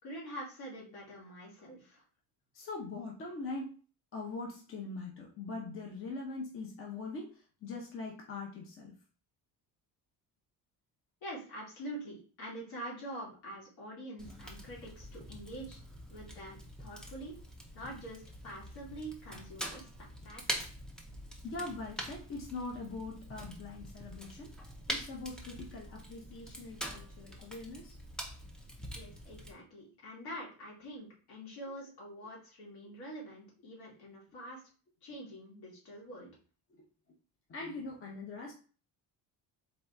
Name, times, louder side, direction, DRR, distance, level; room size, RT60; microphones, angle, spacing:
voice 1, 0.0-2.0 11.2-15.8 16.1-17.4 17.7-20.6 28.9-34.6 35.0-36.3, right 1 dB, 75° left, -4 dB, 2.4 m, -45 dB
voice 2, 2.5-3.7 4.1-9.0 21.4-24.5 24.9-28.0 37.5-38.5, left 3 dB, 35° left, 0 dB, 0.8 m, -42 dB
Fire, 14.2-29.5, equal, ahead, 0.5 m, -44 dB
4.0 x 4.0 x 3.4 m, 0.39 s
cardioid pair, 175°, 38 cm